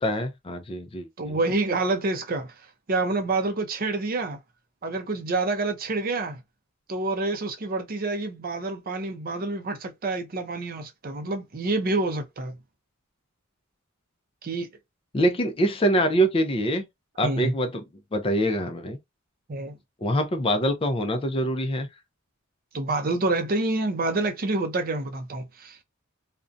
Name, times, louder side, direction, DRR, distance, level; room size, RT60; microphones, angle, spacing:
voice 1, 0.0-1.4 15.1-16.9 17.2-17.8 18.1-19.0 20.0-21.9, equal, 25° left, 0.4 m, -24 dB
voice 2, 1.2-2.5 2.9-4.4 4.8-6.4 6.9-12.6 14.4-14.7 17.2-17.5 19.5-19.8 22.7-25.8, right 2 dB, 45° right, 0.5 m, -27 dB
2.5 x 2.1 x 2.5 m
head